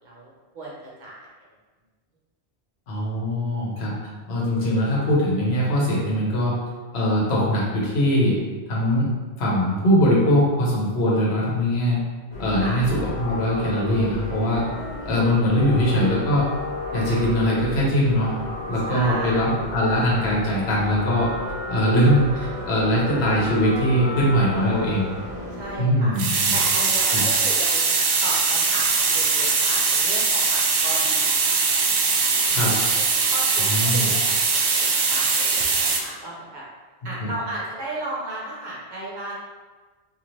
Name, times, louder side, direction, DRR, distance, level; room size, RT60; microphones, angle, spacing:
voice 1, 0.0-1.3 12.6-12.8 18.8-19.5 25.6-26.2 26.5-27.8 28.2-31.3 33.2-36.6 37.0-39.3, right 1 dB, 50° right, -5 dB, 0.8 m, -35 dB
voice 2, 2.9-4.0 4.3-6.5 6.9-8.4 8.7-9.1 9.4-12.0 12.4-14.7 15.0-16.4 16.9-18.4 18.7-21.3 21.7-25.1 25.8-26.5 27.1-27.2 32.5-32.7 33.6-34.1 37.2-37.3, equal, 75° left, -5 dB, 1.1 m, -21 dB
sound 1, 12.3-25.8, left 2 dB, 45° left, 0.8 m, -33 dB
sound 2, 26.1-36.0, right 4 dB, 75° right, 0.8 m, -21 dB
2.6 x 2.5 x 3.1 m, 1.3 s
omnidirectional pair, 1.1 m